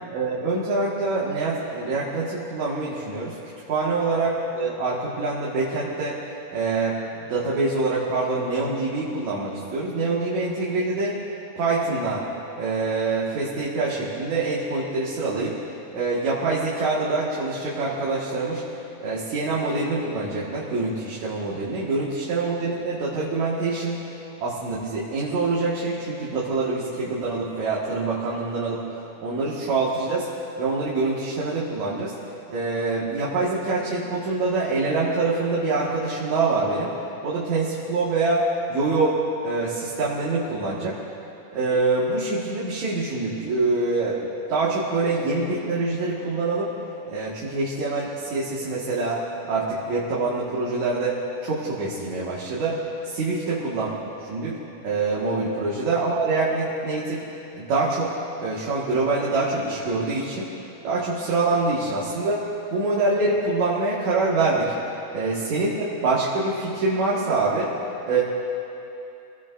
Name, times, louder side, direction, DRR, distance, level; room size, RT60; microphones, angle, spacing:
voice 1, 0.1-3.3 3.7-6.2 6.5-7.0 7.3-11.2 11.6-12.2 12.6-15.6 15.9-18.6 19.0-24.0 24.4-28.8 29.2-30.3 30.6-32.1 32.5-36.9 37.2-39.2 39.4-41.0 41.5-46.7 47.1-49.2 49.5-53.9 54.3-54.6 54.8-57.2 57.5-60.5 60.8-64.7 65.1-67.7 68.0-68.2, right 3 dB, 65° right, -7 dB, 3.0 m, -25 dB
27.0 x 18.0 x 2.6 m, 2.8 s
omnidirectional pair, 3.6 m